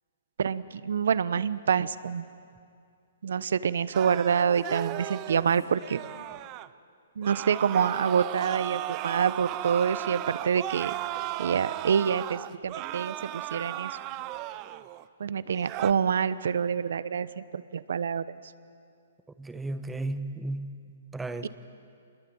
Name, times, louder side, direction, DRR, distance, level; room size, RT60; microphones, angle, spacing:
voice 1, 0.4-2.3 3.2-6.0 7.2-10.9 11.4-14.0 15.2-18.2 21.4-21.5, right 7 dB, 70° right, 16 dB, 0.9 m, -27 dB
sound 1, 3.9-6.7 7.2-15.0 15.5-15.9, right 15 dB, 30° right, 0.7 m, -35 dB
voice 2, 19.4-20.8 21.1-21.5, right 2 dB, 5° right, 10 dB, 1.1 m, -34 dB
26.5 x 21.5 x 8.8 m, 2.4 s
hypercardioid pair, 150°, 0 cm